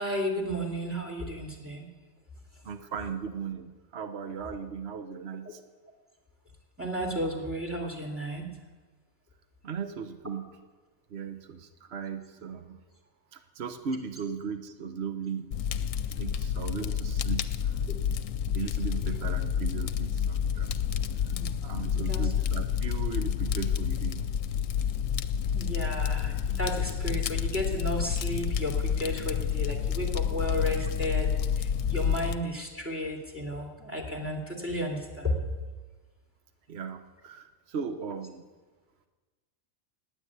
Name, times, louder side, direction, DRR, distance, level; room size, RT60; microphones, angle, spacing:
voice 1, 0.0-1.9 6.8-8.5 21.2-21.6 21.9-22.3 25.5-31.3 31.6-35.4, equal, 10° right, 0 dB, 2.5 m, -33 dB
voice 2, 2.6-5.6 9.6-10.5 11.1-12.8 13.3-15.5 16.2-17.7 18.5-20.7 21.6-24.2 36.7-38.4, right 6 dB, 55° right, 8 dB, 1.2 m, -37 dB
Fire, 15.5-32.3, left 8 dB, 75° left, 1.0 m, -29 dB
19.0 x 8.8 x 8.3 m, 1.3 s
omnidirectional pair, 1.4 m